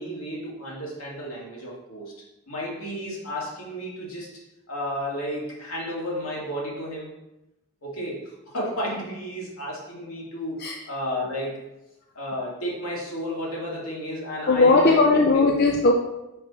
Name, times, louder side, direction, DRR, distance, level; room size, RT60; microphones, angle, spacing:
voice 1, 0.0-2.1 2.5-4.3 4.7-7.1 7.8-11.6 12.1-15.5, equal, 75° left, -5 dB, 2.3 m, -32 dB
voice 2, 14.5-15.9, left 3 dB, 45° left, 1 dB, 0.5 m, -18 dB
5.3 x 5.3 x 4.0 m, 0.95 s
head